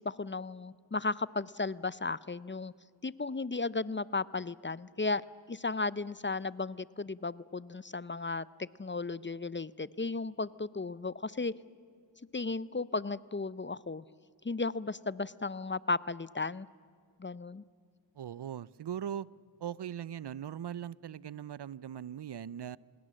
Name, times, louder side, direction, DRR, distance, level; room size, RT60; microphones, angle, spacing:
voice 1, 0.0-2.7 3.0-11.5 12.3-14.0 14.4-16.7 17.2-17.6, left 3 dB, 25° left, 19 dB, 0.5 m, -35 dB
voice 2, 18.2-19.3 19.6-22.8, right 9 dB, 70° right, 22 dB, 0.5 m, -40 dB
26.0 x 20.0 x 7.5 m, 2.2 s
wide cardioid pair, 40°, 43 cm